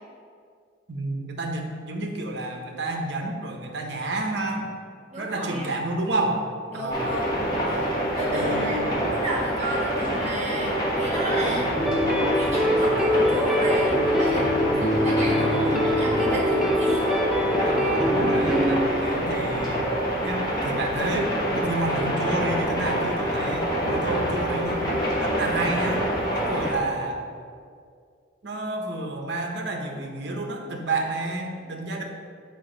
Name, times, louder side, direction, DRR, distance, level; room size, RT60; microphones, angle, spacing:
voice 1, 0.9-4.7 5.2-6.4 6.7-7.2 8.3-8.9 15.3-15.8 17.6-19.8 20.2-24.8 25.2-26.0 26.3-27.2 28.4-32.0, right 2 dB, 55° right, 2 dB, 0.8 m, -30 dB
voice 2, 5.1-5.7 6.7-7.4 7.7-7.8 8.2-8.8 9.1-11.7 12.3-14.5 14.8-17.1, right 1 dB, 35° right, -3 dB, 1.4 m, -32 dB
sound 1, 6.9-26.7, equal, 20° left, 1.1 m, -26 dB
sound 2, 11.8-18.9, equal, ahead, 0.3 m, -23 dB
6.7 x 4.9 x 3.8 m, 2.2 s
head